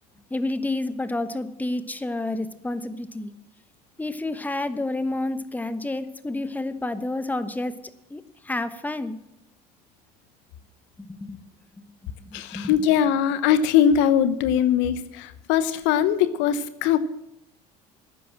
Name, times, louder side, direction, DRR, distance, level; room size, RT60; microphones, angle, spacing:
voice 1, 0.3-3.3 4.0-7.8 8.1-9.2 11.0-11.4 12.2-12.8, left 2 dB, 10° left, 11 dB, 1.1 m, -29 dB
voice 2, 12.3-17.0, left 9 dB, 65° left, 13 dB, 0.9 m, -21 dB
12.0 x 9.5 x 7.5 m, 0.84 s
hypercardioid pair, 65°, 20 cm